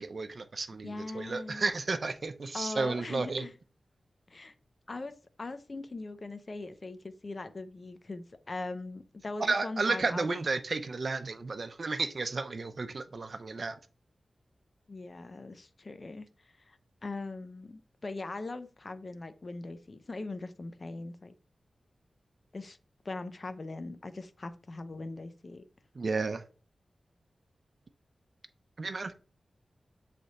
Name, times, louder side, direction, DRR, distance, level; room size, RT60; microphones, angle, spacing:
voice 1, 0.0-3.4 9.4-13.8 25.9-26.4 28.8-29.1, right 3 dB, 55° right, 0.6 m, -32 dB
voice 2, 0.8-1.7 2.5-3.5 4.3-4.5 4.9-10.3 14.9-21.3 22.5-22.8 23.0-25.6, left 3 dB, 45° left, 0.7 m, -41 dB
7.6 x 3.4 x 4.1 m
wide cardioid pair, 70°, 0 cm